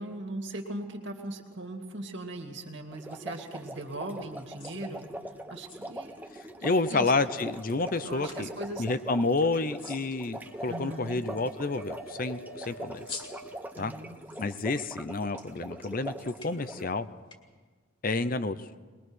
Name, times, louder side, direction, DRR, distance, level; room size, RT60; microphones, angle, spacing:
voice 1, 0.0-5.1 5.5-6.2 6.6-7.1 8.0-8.8 10.7-11.2 13.8-14.2, right 1 dB, 55° right, 3 dB, 2.5 m, -39 dB
sound 1, 2.9-16.9, right 1 dB, 10° right, 0.8 m, -42 dB
sound 2, 4.1-17.4, left 4 dB, 25° left, 2.1 m, -52 dB
voice 2, 6.4-8.5 8.8-13.0 13.8-13.9 14.4-17.1 18.0-18.7, left 3 dB, 40° left, 12 dB, 0.6 m, -29 dB
sound 3, 6.9-13.7, equal, 85° left, 3.5 m, -51 dB
22.0 x 21.5 x 6.3 m, 1.4 s
head